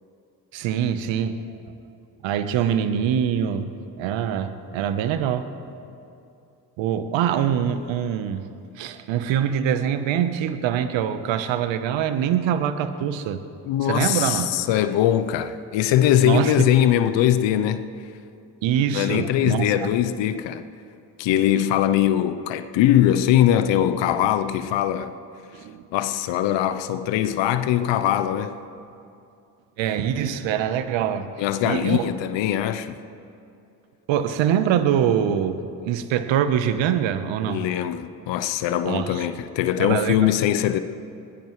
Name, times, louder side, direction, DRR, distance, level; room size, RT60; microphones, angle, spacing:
voice 1, 0.5-1.5 2.2-3.7 4.0-5.5 6.8-8.5 8.8-13.4 13.8-14.5 16.2-16.5 18.6-19.9 25.5-25.8 29.8-31.3 31.6-32.1 34.1-37.7 38.9-39.2 39.8-40.4, right 9 dB, 65° right, 11 dB, 1.1 m, -24 dB
voice 2, 13.7-17.9 18.9-20.7 21.2-25.1 25.9-28.6 31.4-33.0 37.5-40.8, left 11 dB, 65° left, 11 dB, 0.9 m, -21 dB
20.5 x 18.5 x 3.3 m, 2.6 s
hypercardioid pair, 50°, 48 cm